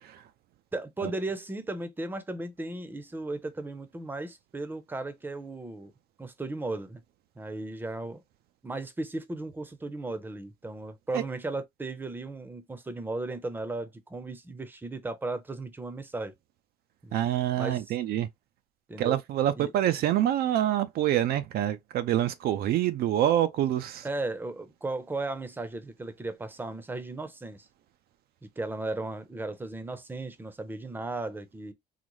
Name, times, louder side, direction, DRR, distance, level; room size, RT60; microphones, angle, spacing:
voice 1, 0.7-5.9 6.2-7.0 7.4-8.2 8.6-16.3 17.0-17.2 17.6-17.9 18.9-19.2 19.6-19.7 24.0-27.7 28.6-31.7, right 2 dB, 10° right, 0.6 m, -36 dB
voice 2, 17.1-18.3 19.0-24.1, right 12 dB, 70° right, 0.4 m, -26 dB
3.9 x 2.1 x 3.1 m
cardioid pair, 110°, 17 cm